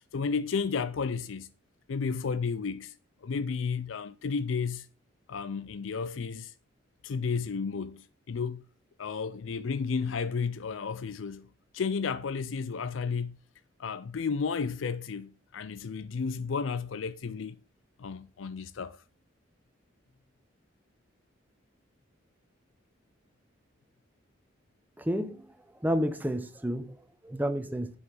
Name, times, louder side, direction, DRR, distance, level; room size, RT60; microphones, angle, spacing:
voice 1, 0.1-1.5 1.9-2.9 3.2-4.9 5.3-6.5 7.0-8.6 9.0-11.5 11.7-13.4 13.8-17.6 18.0-19.0, left 5 dB, 90° left, 0.5 m, -32 dB
voice 2, 25.0-25.4 25.8-27.0 27.2-27.9, equal, 10° right, 0.8 m, -30 dB
8.1 x 5.6 x 6.0 m
head